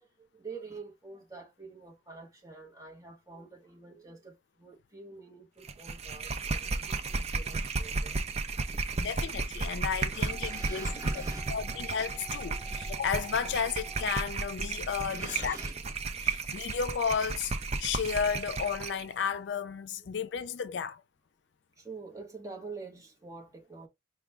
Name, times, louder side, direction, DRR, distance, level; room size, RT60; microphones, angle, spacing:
voice 1, 0.0-8.2 8.7-9.1 9.8-11.5 15.0-15.8 21.8-23.9, right 3 dB, 20° right, 1.1 m, -46 dB
sound 1, 5.6-19.0, right 3 dB, 35° right, 0.5 m, -34 dB
voice 2, 9.0-10.9 11.5-15.6 16.2-17.5 17.8-21.0, left 6 dB, 70° left, 0.4 m, -33 dB
sound 2, 10.3-14.5, right 2 dB, 5° left, 2.8 m, -50 dB
4.8 x 2.3 x 3.3 m
head